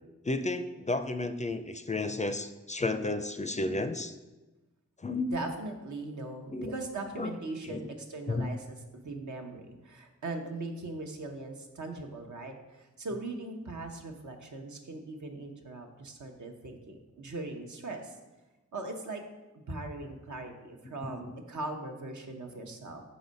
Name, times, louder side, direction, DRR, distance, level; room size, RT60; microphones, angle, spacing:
voice 1, 0.2-4.1 5.0-5.3 6.5-6.7 7.2-7.3 7.6-7.8 8.3-8.5 21.0-21.4, left 2 dB, 25° left, 9 dB, 0.4 m, -32 dB
voice 2, 5.3-18.2 18.7-19.2 19.5-23.0, right 2 dB, 80° right, 2 dB, 0.9 m, -40 dB
5.4 x 4.0 x 5.1 m, 1.1 s
cardioid pair, 45°, 29 cm